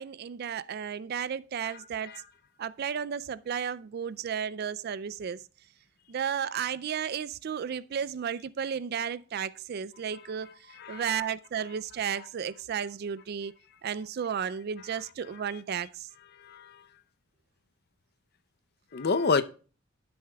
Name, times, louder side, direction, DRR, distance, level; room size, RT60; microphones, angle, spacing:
voice 1, 0.0-2.1 2.6-5.4 6.1-10.5 10.9-13.5 13.8-16.1, right 7 dB, 50° right, 0.3 m, -33 dB
voice 2, 1.6-2.2 10.7-11.2 16.4-16.8 18.9-19.4, left 4 dB, 50° left, 0.6 m, -29 dB
13.0 x 7.8 x 2.3 m
head